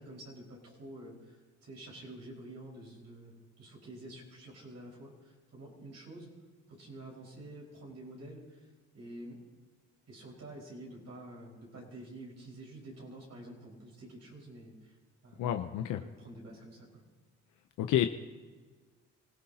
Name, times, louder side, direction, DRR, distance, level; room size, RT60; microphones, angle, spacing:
voice 1, 0.0-6.3 6.7-8.7 8.9-9.4 10.1-15.0 15.2-15.5 16.0-17.0, right 1 dB, 55° right, -3 dB, 5.0 m, -49 dB
voice 2, 15.4-16.0 17.8-18.1, left 11 dB, 85° left, 6 dB, 0.7 m, -29 dB
28.5 x 16.0 x 2.9 m, 1.4 s
cardioid pair, 90°, 30 cm